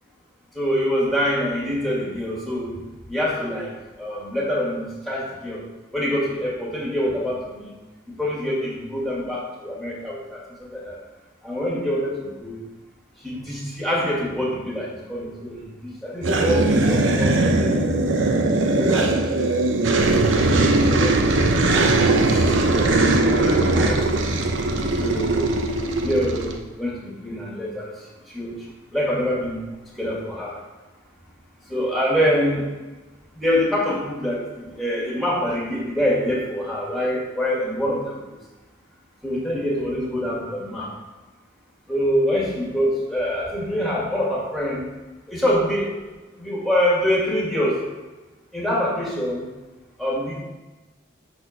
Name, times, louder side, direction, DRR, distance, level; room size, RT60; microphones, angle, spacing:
voice 1, 0.5-2.7 3.1-5.6 5.9-7.7 8.1-11.0 11.4-12.5 13.2-17.8 18.7-19.8 20.1-21.6 22.2-23.0 23.4-24.4 25.0-25.5 25.9-26.5 26.8-27.9 28.3-28.5 28.9-29.6 30.0-30.6 31.7-32.7 33.3-38.2 39.2-40.9 41.9-44.9 45.3-45.9 46.3-47.8 48.5-49.4 50.0-50.4, equal, ahead, -5 dB, 2.0 m, -25 dB
sound 1, 16.2-26.6, right 2 dB, 85° right, 0.8 m, -20 dB
6.3 x 4.3 x 6.5 m, 1.2 s
head